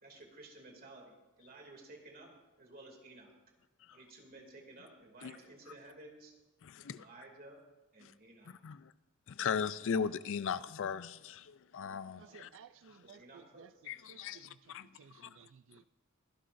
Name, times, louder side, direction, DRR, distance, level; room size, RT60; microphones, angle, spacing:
voice 1, 0.0-2.3 2.6-3.3 3.9-6.3 6.8-7.6 7.9-8.5 12.1-12.4 13.0-13.7, right 2 dB, 45° right, 2.6 m, -54 dB
voice 2, 6.6-7.1 8.0-8.1 8.5-8.9 9.3-12.5 13.9-14.9 15.2-15.3, left 6 dB, 60° left, 0.4 m, -38 dB
voice 3, 12.2-15.9, right 7 dB, 60° right, 0.4 m, -58 dB
23.5 x 11.5 x 2.6 m
head